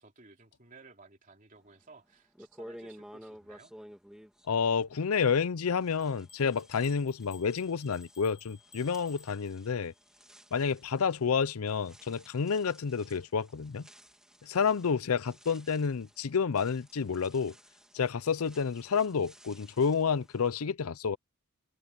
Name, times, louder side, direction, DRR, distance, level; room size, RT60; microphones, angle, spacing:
voice 1, 0.0-3.7, right 3 dB, 35° right, 3.5 m, -56 dB
sound 1, 1.8-1.9 2.3-5.5 5.8-20.5, equal, 5° right, 2.9 m, -54 dB
voice 2, 4.5-9.9 10.5-13.8 14.4-17.5 17.9-21.2, left 6 dB, 90° left, 0.6 m, -29 dB
sound 2, 6.0-10.0, left 6 dB, 50° left, 2.5 m, -58 dB
head